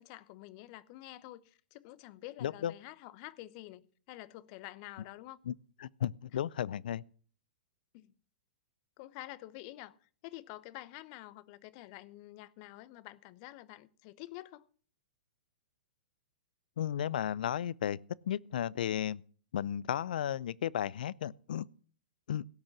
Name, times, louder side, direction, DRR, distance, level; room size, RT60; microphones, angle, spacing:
voice 1, 0.0-5.4 7.9-8.1 9.0-14.7, left 17 dB, 45° left, 0.9 m, -48 dB
voice 2, 2.4-2.7 5.5-5.6 5.8-7.0 16.8-18.0 18.3-19.2 19.5-21.7 22.3-22.4, left 10 dB, 65° left, 0.5 m, -34 dB
16.5 x 6.4 x 7.1 m
hypercardioid pair, 115°, 5 cm